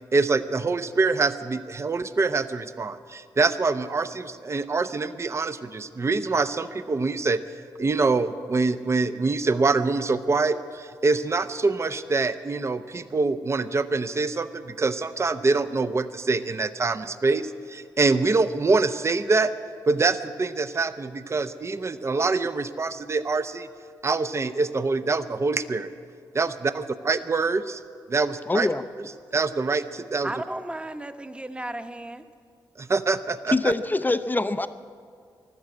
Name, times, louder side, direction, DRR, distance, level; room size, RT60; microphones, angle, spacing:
voice 1, 0.1-7.4 7.8-19.5 19.9-23.7 24.0-25.9 26.3-26.5 27.1-27.8 28.1-28.7 29.3-30.3 32.8-33.7, right 3 dB, 35° right, 11 dB, 0.7 m, -25 dB
voice 2, 28.5-28.8 33.5-34.7, left 2 dB, 20° left, 11 dB, 0.6 m, -24 dB
voice 3, 30.2-32.2, right 1 dB, 15° right, 8 dB, 1.0 m, -34 dB
14.0 x 12.0 x 8.4 m, 2.2 s
cardioid pair, 60°, 8 cm